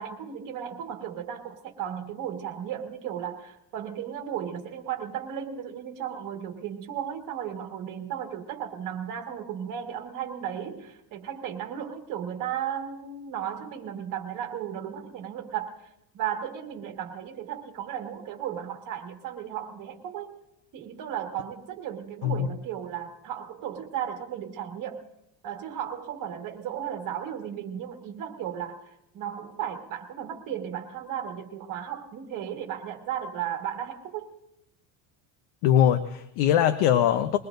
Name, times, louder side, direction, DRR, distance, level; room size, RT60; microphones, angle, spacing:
voice 1, 0.0-15.8 16.1-20.4 20.7-25.0 25.4-34.3, right 9 dB, 45° right, 3 dB, 1.7 m, -35 dB
voice 2, 35.6-37.4, left 10 dB, 90° left, 9 dB, 0.9 m, -21 dB
22.0 x 19.5 x 2.6 m, 0.84 s
cardioid pair, 175°, 45 cm